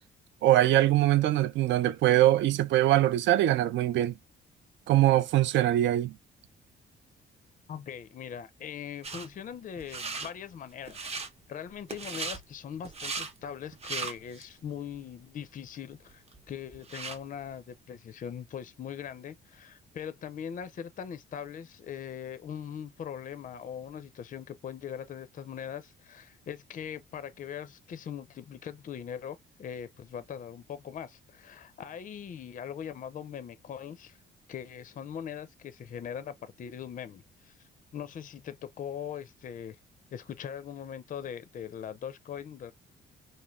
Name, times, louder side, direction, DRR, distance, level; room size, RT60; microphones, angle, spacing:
voice 1, 0.4-4.1 4.9-6.2, right 14 dB, 70° right, 0.4 m, -23 dB
voice 2, 7.7-11.1 11.5-34.2 34.5-39.8 40.1-42.7, left 8 dB, 40° left, 0.4 m, -41 dB
sound 1, 9.0-9.3 9.8-10.3 10.8-11.3 11.9-12.4 12.8-13.3 13.7-14.5 14.9-15.0 15.7-15.8 16.1-17.2, right 4 dB, 30° right, 0.7 m, -37 dB
3.1 x 2.1 x 2.4 m
cardioid pair, 90°, 20 cm